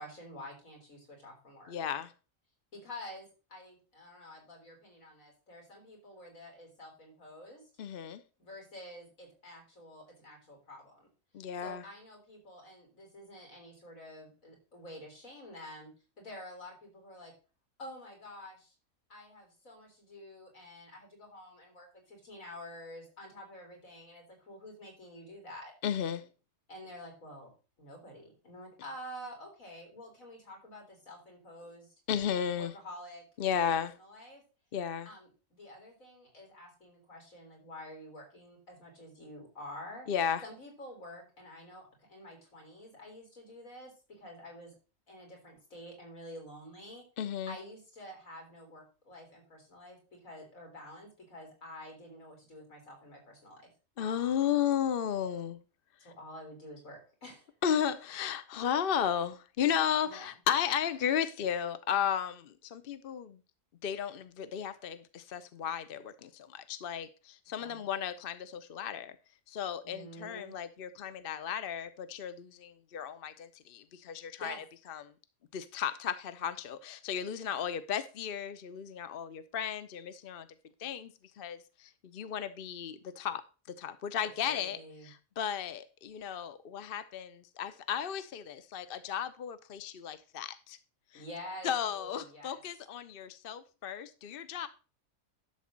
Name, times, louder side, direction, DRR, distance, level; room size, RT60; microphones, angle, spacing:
voice 1, 0.0-1.7 2.7-7.7 8.4-11.1 11.6-15.9 16.2-17.3 17.8-18.7 19.1-25.7 26.7-27.5 27.8-31.9 32.5-34.4 35.1-40.1 40.4-44.7 45.1-47.0 47.5-53.7 56.0-57.5 60.0-60.3 67.6-67.8 69.8-70.5 74.4-74.6 84.2-85.1 91.1-92.6, left 1 dB, 75° left, 1 dB, 4.2 m, -49 dB
voice 2, 1.7-2.1 7.8-8.2 11.3-11.8 25.8-26.3 32.1-32.7 33.4-33.9 34.7-35.1 40.1-40.4 47.2-47.6 54.0-55.6 57.6-63.4 63.8-69.1 69.5-74.5 74.9-75.0 75.5-80.5 80.8-81.1 81.4-83.4 83.7-84.8 85.0-90.8 91.1-91.2 91.6-94.7, left 8 dB, 50° left, 12 dB, 0.8 m, -34 dB
11.5 x 4.1 x 7.3 m, 0.34 s
omnidirectional pair, 1.4 m